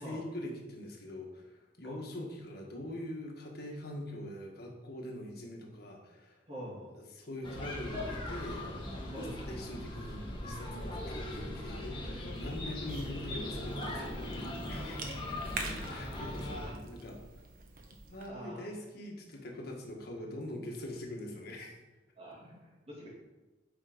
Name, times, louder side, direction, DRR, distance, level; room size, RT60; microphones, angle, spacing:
voice 1, 0.0-6.4 7.1-8.7 9.4-14.1 14.7-15.0 15.9-17.2 18.1-21.8, left 1 dB, 60° left, 0 dB, 1.6 m, -43 dB
voice 2, 6.5-6.9 9.1-9.4 14.7-15.6 16.0-16.8 18.3-18.7 22.2-23.1, equal, 35° right, -5 dB, 2.8 m, -46 dB
sound 1, 7.4-16.7, left 1 dB, 25° left, 1.6 m, -39 dB
Cough / Chewing mastication, 12.3-18.3, right 3 dB, 55° right, 1.1 m, -46 dB
8.7 x 4.8 x 5.1 m, 1.1 s
head